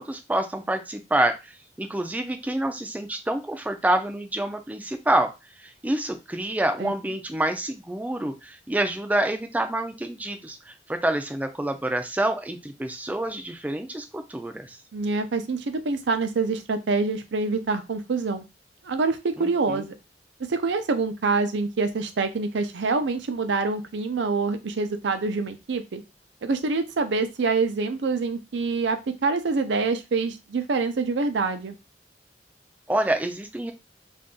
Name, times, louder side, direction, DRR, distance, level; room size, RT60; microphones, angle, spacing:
voice 1, 0.0-1.4 1.8-5.3 5.6-14.8 19.4-19.8 32.9-33.7, right 1 dB, 10° right, 6 dB, 0.3 m, -27 dB
voice 2, 14.9-18.4 18.8-19.9 20.5-26.0 26.4-31.7, right 4 dB, 90° right, 8 dB, 0.5 m, -26 dB
2.6 x 2.3 x 3.6 m, 0.25 s
head